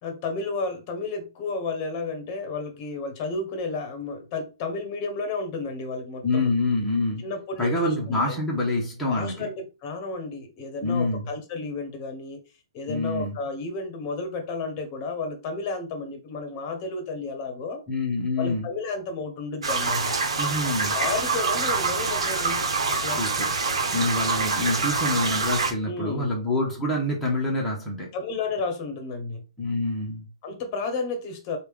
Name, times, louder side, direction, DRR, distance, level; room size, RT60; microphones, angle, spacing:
voice 1, 0.0-6.5 7.2-8.4 9.1-9.5 9.8-12.4 12.7-17.8 18.4-20.2 20.6-22.6 22.9-23.2 25.8-26.3 28.1-29.4 30.4-31.6, left 3 dB, 35° left, 1.0 m, -32 dB
voice 2, 6.2-7.2 7.6-9.5 10.8-11.3 12.9-13.3 17.9-18.7 20.4-21.0 23.2-23.5 23.9-28.1 29.6-30.2, left 2 dB, 5° left, 1.0 m, -26 dB
sound 1, 19.6-25.7, right 4 dB, 90° right, 0.9 m, -26 dB
3.3 x 2.5 x 3.4 m
hypercardioid pair, 150°, 3 cm